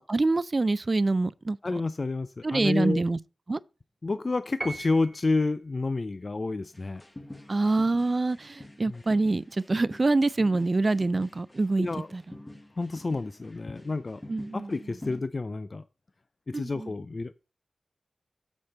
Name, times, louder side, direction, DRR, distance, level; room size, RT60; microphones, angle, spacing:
voice 1, 0.1-1.6 2.4-3.2 3.5-3.6 7.5-11.9 12.1-12.2 14.3-14.7 16.5-16.9, right 3 dB, 45° right, 0.4 m, -25 dB
voice 2, 1.6-3.0 4.0-7.0 8.9-9.0 11.8-12.1 12.8-14.2 14.5-15.8 16.5-17.4, left 3 dB, 45° left, 0.4 m, -29 dB
Piano, 4.6-5.5, right 2 dB, 25° right, 1.1 m, -38 dB
sound 1, 6.7-15.2, left 1 dB, 20° left, 1.0 m, -47 dB
7.3 x 4.3 x 6.5 m
cardioid pair, 60°, 0 cm